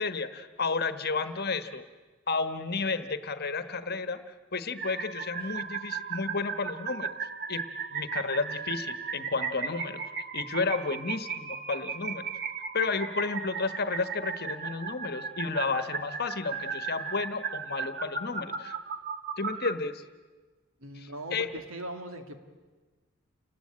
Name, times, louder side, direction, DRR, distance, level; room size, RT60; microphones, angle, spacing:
voice 1, 0.0-1.8 2.3-4.2 4.5-7.1 7.5-7.6 7.9-10.0 10.3-12.3 12.7-18.8 19.4-20.0 21.0-21.5, left 4 dB, 45° left, 10 dB, 1.2 m, -32 dB
sound 1, 4.8-19.7, right 5 dB, 50° right, 1.3 m, -36 dB
voice 2, 20.8-22.4, right 1 dB, 75° right, 6 dB, 2.4 m, -40 dB
29.0 x 19.5 x 8.7 m, 1.3 s
head